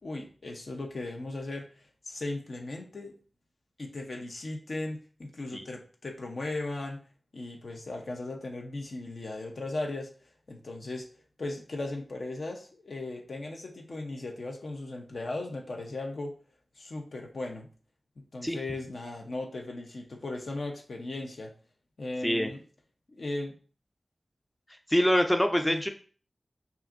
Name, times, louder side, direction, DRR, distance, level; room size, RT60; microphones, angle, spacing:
voice 1, 0.0-1.7 2.0-3.1 3.8-7.0 7.3-10.1 10.5-11.1 11.4-16.3 16.8-17.7 18.2-21.5 22.0-22.6 23.1-23.5 25.6-25.9, left 2 dB, 70° left, 1 dB, 0.8 m, -37 dB
voice 2, 24.9-25.9, equal, 10° left, 5 dB, 0.4 m, -25 dB
5.6 x 2.5 x 2.5 m, 0.40 s
wide cardioid pair, 65°, 0 cm